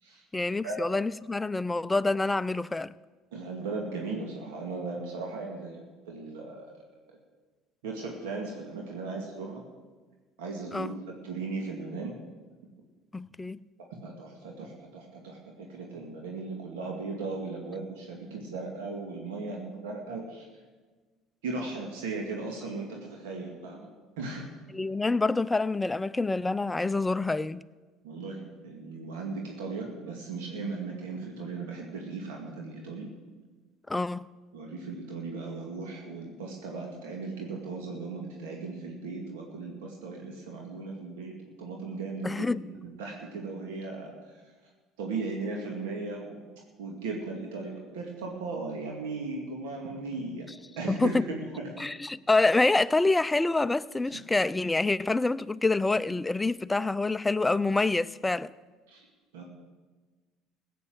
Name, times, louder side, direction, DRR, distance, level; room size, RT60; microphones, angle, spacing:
voice 1, 0.3-2.9 10.7-10.9 13.1-13.6 24.7-27.6 33.9-34.3 42.2-42.6 51.0-51.2 51.8-58.5, left 3 dB, 15° left, 0.5 m, -26 dB
voice 2, 3.3-6.7 7.1-7.2 7.8-9.6 10.4-12.2 13.9-20.5 21.4-23.9 24.2-24.5 28.0-33.1 34.5-42.5 42.8-44.1 45.0-46.4 46.8-50.5 50.8-51.8 54.1-54.2 58.9-59.1 59.3-59.4, right 3 dB, 85° right, 2.2 m, -37 dB
15.5 x 8.5 x 7.9 m
supercardioid pair, 80°, 0 cm